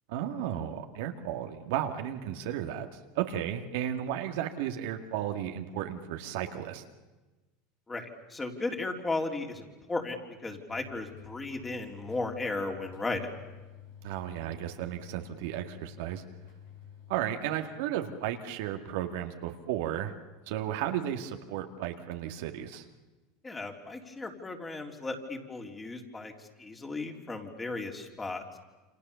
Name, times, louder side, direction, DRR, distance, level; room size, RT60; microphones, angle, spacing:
voice 1, 0.1-6.8 14.0-16.2 17.1-20.1 20.5-22.8, right 11 dB, 75° right, 5 dB, 2.0 m, -34 dB
voice 2, 7.9-10.2 10.4-13.3 23.4-28.6, left 3 dB, 15° left, 2 dB, 3.6 m, -35 dB
sound 1, 10.7-17.2, left 10 dB, 85° left, 6.4 m, -51 dB
28.5 x 26.5 x 7.0 m, 1.2 s
supercardioid pair, 105°, 0 cm